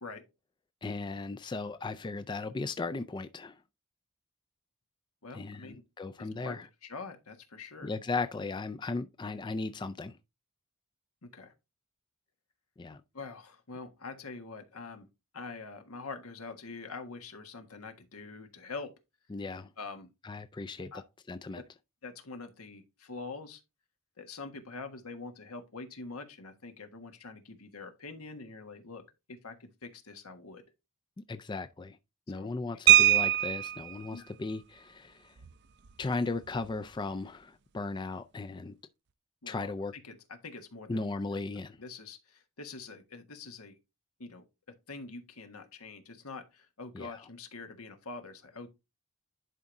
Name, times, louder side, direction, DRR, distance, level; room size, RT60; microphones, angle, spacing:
voice 1, 0.8-3.6 5.3-6.6 7.8-10.2 12.8-13.0 19.3-19.7 20.2-20.9 21.3-21.6 31.3-32.0 32.3-35.3 36.0-38.8 39.5-39.9 40.9-41.8 46.9-47.2, left 3 dB, 20° left, 0.3 m, -36 dB
voice 2, 5.2-5.8 6.2-6.6 6.8-7.9 11.2-11.5 13.1-15.1 15.3-18.9 19.8-20.1 20.9-21.0 21.5-21.6 22.0-23.6 24.2-30.6 32.3-32.5 34.1-34.3 39.4-39.7 40.0-41.0 41.6-43.8 44.2-44.4 44.9-48.7, left 4 dB, 85° left, 1.4 m, -45 dB
sound 1, 32.9-33.9 35.4-35.5 35.9-36.0 36.4-36.7, right 14 dB, 50° right, 0.5 m, -22 dB
11.0 x 4.7 x 2.6 m
head